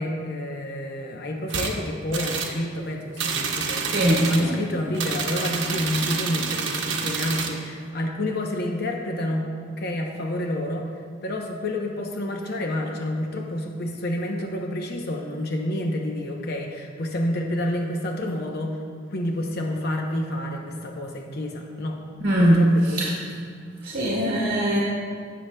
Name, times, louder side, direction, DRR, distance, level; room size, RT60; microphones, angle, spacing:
voice 1, 0.0-10.9 11.2-18.8 19.1-22.0 22.4-23.1, left 1 dB, 55° left, 2 dB, 0.7 m, -29 dB
sound 1, 1.5-1.7 2.1-2.6 3.2-4.5 4.9-7.6, right 5 dB, 70° right, 1.0 m, -28 dB
voice 2, 3.9-4.6 22.2-23.2 23.8-24.8, right 1 dB, 55° right, -6 dB, 1.7 m, -21 dB
17.5 x 6.6 x 2.2 m, 2.1 s
head